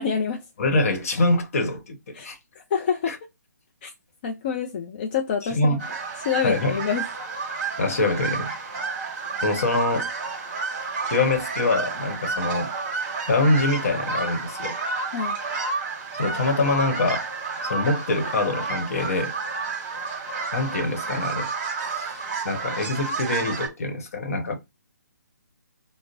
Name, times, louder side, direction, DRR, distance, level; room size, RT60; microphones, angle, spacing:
voice 1, 0.0-0.4 2.1-2.3 2.7-3.2 3.8-3.9 4.2-5.8 6.2-7.1 15.1-15.4, left 7 dB, 30° left, 0.4 m, -26 dB
voice 2, 0.6-2.0 2.2-2.4 3.1-3.2 5.5-5.8 6.4-6.8 7.8-8.5 9.4-10.1 11.1-12.7 13.3-14.8 16.1-17.3 17.6-19.3 20.5-21.5 21.9-24.6, left 2 dB, 50° left, 1.1 m, -24 dB
sound 1, 5.8-23.7, right 4 dB, 30° right, 1.3 m, -30 dB
5.1 x 2.0 x 2.5 m
figure-of-eight pair, 140°, 10 cm